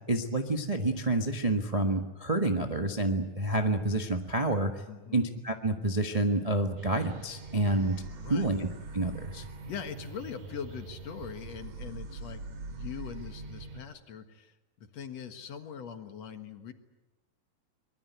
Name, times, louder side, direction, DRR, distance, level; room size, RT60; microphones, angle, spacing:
voice 1, 0.1-4.8 5.1-8.7 8.9-9.4, right 2 dB, 55° right, 4 dB, 0.4 m, -28 dB
voice 2, 4.9-5.2 7.8-7.9 8.2-8.5 9.7-12.4 12.7-14.6 14.8-16.7, left 7 dB, 60° left, 7 dB, 2.6 m, -42 dB
sound 1, 6.8-13.8, right 3 dB, 85° right, 3.8 m, -43 dB
23.5 x 22.0 x 9.4 m, 1.1 s
omnidirectional pair, 3.4 m